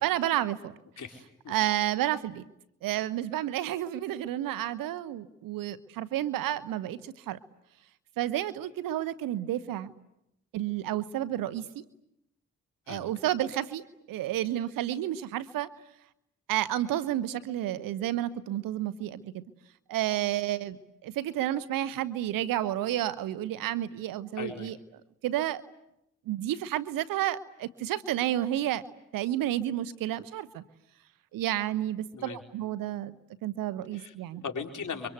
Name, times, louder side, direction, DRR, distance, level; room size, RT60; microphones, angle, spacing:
voice 1, 0.0-0.7 1.5-2.4 2.8-7.4 8.2-9.9 10.5-11.8 12.9-15.7 16.5-19.4 19.9-24.8 25.2-25.6 26.3-28.8 29.1-30.6 31.3-34.4, right 13 dB, 85° right, 15 dB, 1.1 m, -31 dB
voice 2, 1.0-1.6 12.9-13.1 24.4-24.7 32.1-32.4 33.9-34.1 34.4-35.1, left 5 dB, 65° left, 3 dB, 4.7 m, -38 dB
30.0 x 24.0 x 8.1 m, 0.82 s
supercardioid pair, 45°, 33 cm